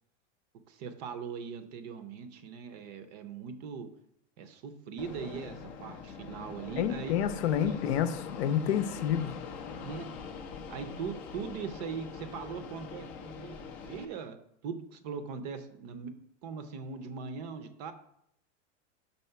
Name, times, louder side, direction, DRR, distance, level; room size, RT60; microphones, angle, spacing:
voice 1, 0.7-3.9 4.4-7.2 7.7-7.8 9.2-9.3 9.8-10.1 10.7-14.4 14.6-16.1 16.4-17.9, right 6 dB, 35° right, 10 dB, 0.6 m, -40 dB
Fixed-wing aircraft airplane, 5.0-14.0, left 6 dB, 25° left, 0.4 m, -43 dB
voice 2, 6.8-9.3, left 9 dB, 60° left, 11 dB, 0.7 m, -29 dB
5.5 x 4.2 x 5.6 m, 0.73 s
supercardioid pair, 165°, 36 cm